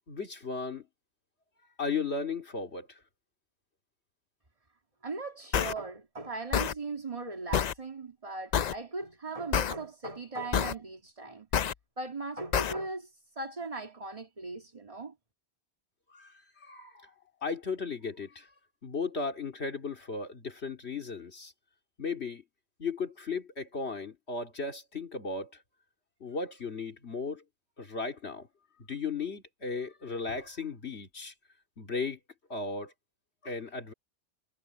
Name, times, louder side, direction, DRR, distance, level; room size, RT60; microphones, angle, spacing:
voice 1, 0.1-0.9 1.8-3.0 16.1-17.1 17.4-18.5 18.8-21.5 22.0-22.4 22.8-25.6 26.2-27.4 27.8-28.5 28.8-31.3 31.8-32.2 32.5-32.9 33.4-33.9, left 4 dB, 75° left, 2.7 m, -36 dB
voice 2, 5.0-11.5 12.0-15.1, right 3 dB, 30° right, 1.9 m, -39 dB
sound 1, 5.5-5.7 6.5-6.7 7.5-7.7 8.5-8.7 9.5-9.7 10.5-10.7 11.5-11.7 12.5-12.7, left 8 dB, 50° left, 0.5 m, -27 dB
omnidirectional pair, 1.1 m